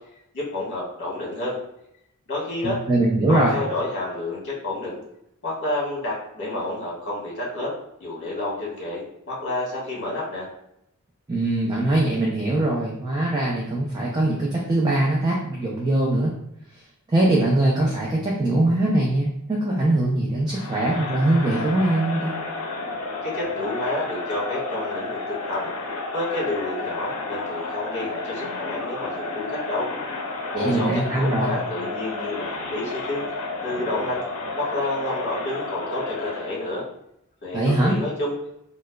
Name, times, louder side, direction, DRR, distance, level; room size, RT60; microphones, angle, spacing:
voice 1, 0.3-1.5 2.3-2.8 3.3-5.0 5.4-7.7 8.0-10.5 23.2-25.7 26.1-29.9 30.6-33.2 33.6-34.2 34.6-36.8 37.4-38.3, left 2 dB, 55° left, -5 dB, 1.4 m, -29 dB
voice 2, 2.6-3.6 11.3-16.3 17.1-22.3 30.5-31.5 37.5-38.0, right 1 dB, 20° right, -4 dB, 0.4 m, -22 dB
Crowd, 20.5-36.7, left 3 dB, 70° left, 0.6 m, -31 dB
4.5 x 2.0 x 2.3 m, 0.78 s
head